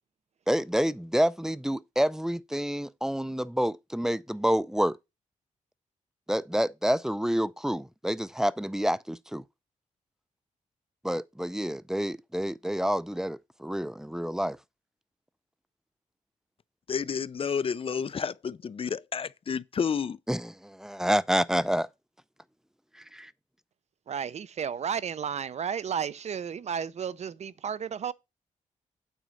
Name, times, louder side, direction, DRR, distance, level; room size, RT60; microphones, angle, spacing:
voice 1, 0.5-5.0 6.3-9.4 11.0-14.6 20.3-21.9 23.1-23.3, equal, 5° right, 0.5 m, -28 dB
voice 2, 16.9-20.2, left 6 dB, 45° left, 0.5 m, -30 dB
voice 3, 24.1-28.1, right 7 dB, 55° right, 0.6 m, -33 dB
9.1 x 4.0 x 6.4 m
cardioid pair, 70°, 13 cm